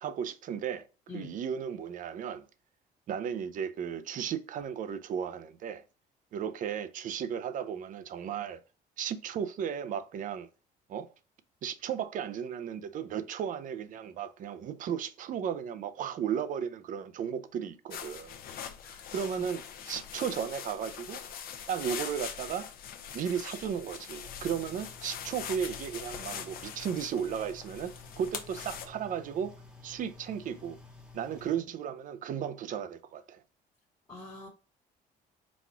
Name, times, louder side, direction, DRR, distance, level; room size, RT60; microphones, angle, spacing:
voice 1, 0.0-0.8 1.1-2.4 3.1-5.8 6.3-8.6 9.0-10.5 10.9-11.1 11.6-18.4 19.1-21.2 21.7-22.7 23.1-29.5 29.8-30.8 31.1-33.4, right 8 dB, 50° right, 0.5 m, -35 dB
sound 1, 17.9-28.9, left 8 dB, 60° left, 0.7 m, -42 dB
sound 2, 24.2-31.6, left 3 dB, 5° right, 0.9 m, -52 dB
voice 2, 34.1-34.5, left 4 dB, 20° left, 1.2 m, -45 dB
4.1 x 2.3 x 4.3 m
cardioid pair, 110°, 17 cm